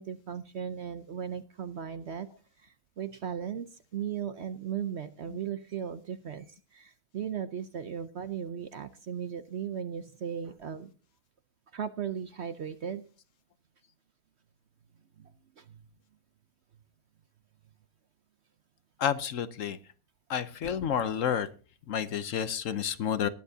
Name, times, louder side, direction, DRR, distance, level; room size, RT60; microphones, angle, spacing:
voice 1, 0.0-2.3 2.6-10.9 11.7-13.0 15.2-15.9, right 8 dB, 55° right, 12 dB, 0.8 m, -37 dB
voice 2, 19.0-19.8 20.3-21.5 21.9-23.3, left 8 dB, 60° left, 14 dB, 1.0 m, -30 dB
19.5 x 10.5 x 2.7 m, 0.36 s
omnidirectional pair, 1.7 m